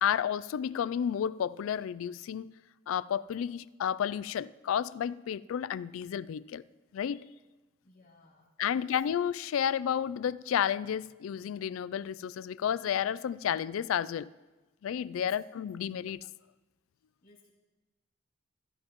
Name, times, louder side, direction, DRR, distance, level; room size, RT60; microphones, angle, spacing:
voice 1, 0.0-2.5 2.9-6.6 6.9-7.3 8.6-14.3 14.8-16.3, left 9 dB, 85° left, 0.3 m, -31 dB
voice 2, 7.8-9.1 15.1-15.3 15.6-15.8 16.9-17.5, left 3 dB, 45° left, 3.3 m, -60 dB
16.0 x 14.0 x 3.0 m
head